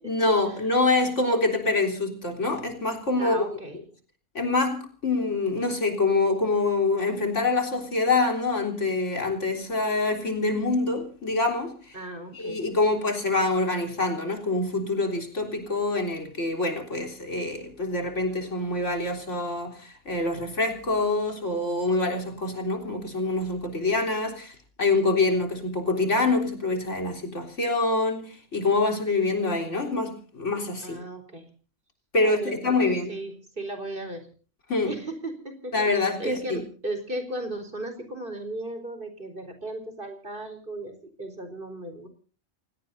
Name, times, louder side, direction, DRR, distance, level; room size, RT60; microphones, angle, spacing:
voice 1, 0.0-3.4 4.3-12.0 12.3-31.0 32.1-33.2 34.7-34.9 35.7-36.6, left 3 dB, 90° left, 4.1 m, -25 dB
voice 2, 3.2-3.7 11.9-13.0 30.8-31.4 32.2-32.8 33.1-34.3 34.8-42.1, right 1 dB, 45° right, 4.4 m, -36 dB
30.0 x 17.0 x 2.7 m
omnidirectional pair, 1.2 m